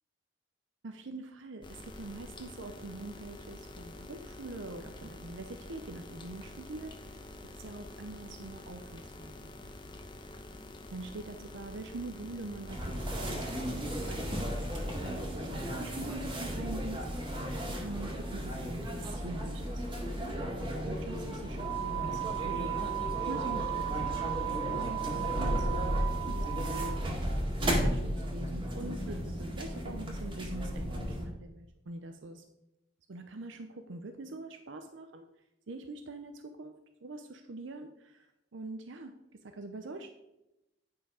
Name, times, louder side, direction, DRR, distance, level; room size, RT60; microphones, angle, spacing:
voice 1, 0.8-9.6 10.9-20.3 20.7-32.4 33.1-35.3 35.7-36.7 37.0-39.2 39.4-40.1, right 2 dB, 75° right, 6 dB, 0.6 m, -44 dB
sound 1, 1.6-15.3, left 1 dB, 25° left, 0.9 m, -47 dB
sound 2, 12.7-31.3, right 2 dB, 25° right, 1.8 m, -34 dB
9.7 x 5.7 x 4.9 m, 0.92 s
head